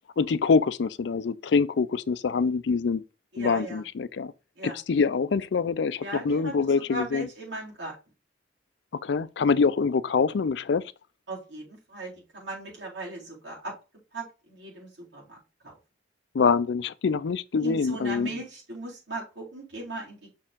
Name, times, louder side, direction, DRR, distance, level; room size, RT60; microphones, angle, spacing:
voice 1, 0.2-3.0 3.4-4.3 4.6-7.3 9.0-10.8 16.3-18.3, left 5 dB, 75° left, 0.4 m, -25 dB
voice 2, 3.3-3.8 4.6-4.8 6.0-6.6 6.9-7.9 11.3-13.7 14.1-15.7 17.6-20.2, right 2 dB, 80° right, 4.0 m, -38 dB
6.0 x 4.4 x 3.6 m
head